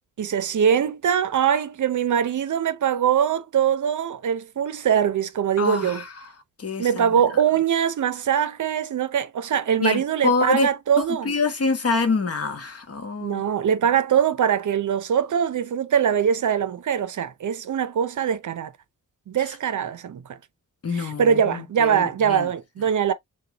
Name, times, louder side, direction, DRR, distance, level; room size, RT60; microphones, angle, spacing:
voice 1, 0.2-6.0 6.8-11.3 13.2-18.7 19.3-20.4 20.9-23.1, right 8 dB, 60° right, 0.6 m, -22 dB
voice 2, 5.6-6.1 6.6-7.0 9.8-10.7 11.0-13.4 20.8-22.4, left 3 dB, 45° left, 1.2 m, -25 dB
6.8 x 2.3 x 2.9 m
wide cardioid pair, 165°, 34 cm